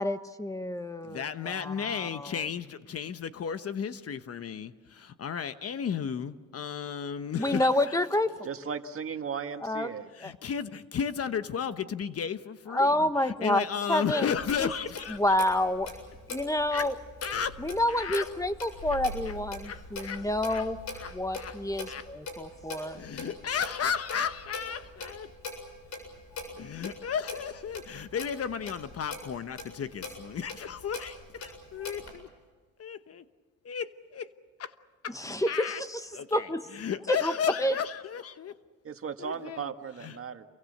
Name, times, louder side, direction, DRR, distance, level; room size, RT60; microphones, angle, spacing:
voice 1, 0.0-2.3 7.4-8.3 9.6-9.9 10.2-10.3 12.7-14.3 14.6-14.7 15.2-15.9 16.3-16.9 17.6-19.6 19.9-20.8 21.1-23.0 35.1-36.0 36.3-36.6 37.1-37.3 37.6-37.7, left 1 dB, 10° left, 10 dB, 1.3 m, -28 dB
voice 2, 1.0-8.0 10.1-15.4 16.7-16.9 17.2-17.6 17.9-18.3 19.3-19.4 19.7-20.2 20.5-20.7 20.9-22.1 22.9-25.3 26.6-32.3 32.8-33.2 33.6-34.3 34.6-34.7 35.0-35.2 35.5-35.8 36.1-38.6 39.2-39.7 40.0-40.2, left 7 dB, 50° left, 11 dB, 1.2 m, -34 dB
voice 3, 8.4-10.1 38.8-40.5, right 6 dB, 45° right, 7 dB, 1.8 m, -36 dB
Clock, 14.3-32.1, left 3 dB, 70° left, 7.5 m, -42 dB
28.5 x 23.5 x 6.7 m, 1.4 s
cardioid pair, 90°, 30 cm